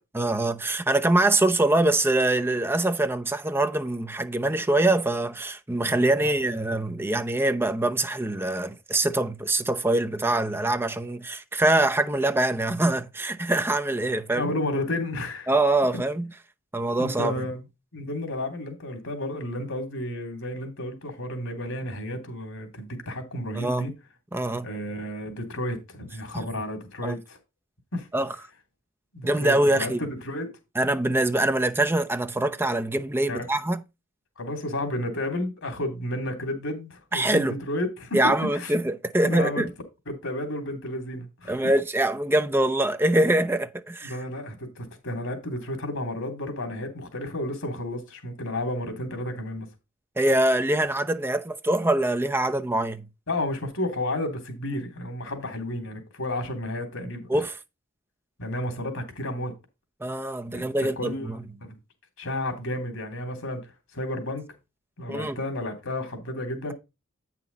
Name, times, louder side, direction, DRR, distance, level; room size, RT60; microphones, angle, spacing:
voice 1, 0.1-14.5 15.5-16.3 16.7-17.3 23.5-23.9 24.3-24.7 26.3-26.5 27.0-27.2 28.1-28.4 29.2-30.0 30.8-33.8 37.1-37.5 38.1-39.7 41.5-44.2 50.2-53.1 57.3-57.6 60.0-61.4 65.1-65.4, right 1 dB, 10° right, 0.7 m, -24 dB
voice 2, 14.3-15.5 17.0-17.6 17.9-23.9 24.6-27.4 27.9-28.1 29.1-29.9 30.2-30.5 33.2-33.5 34.4-38.2 38.5-38.7 39.2-39.6 40.1-41.5 44.0-49.7 53.3-57.3 58.4-59.5 60.5-60.7 61.0-61.8 62.2-63.6 63.9-64.5 65.0-66.7, left 1 dB, 90° left, 3.1 m, -32 dB
8.9 x 5.9 x 4.1 m
head